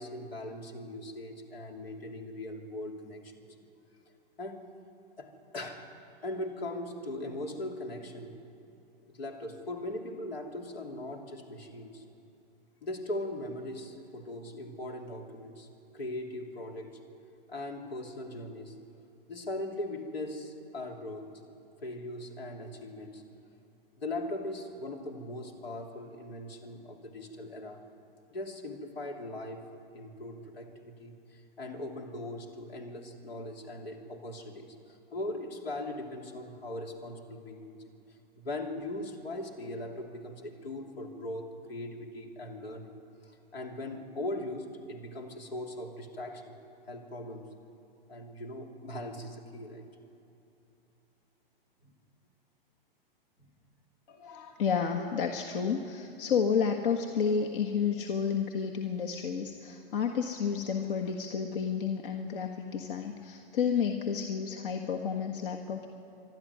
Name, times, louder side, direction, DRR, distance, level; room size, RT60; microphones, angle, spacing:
voice 1, 0.0-3.6 4.4-4.7 5.2-5.9 6.2-8.4 9.1-12.0 12.8-15.7 15.9-17.0 17.5-18.8 19.3-21.3 21.8-23.2 24.0-27.9 28.3-37.8 38.1-46.5 46.9-47.5 48.1-49.9 51.8-51.9 53.4-53.5, left 1 dB, 85° left, 2 dB, 3.1 m, -40 dB
voice 2, 54.1-65.9, left 6 dB, 65° left, 3 dB, 1.6 m, -31 dB
25.5 x 12.0 x 9.4 m, 2.8 s
hypercardioid pair, 120°, 29 cm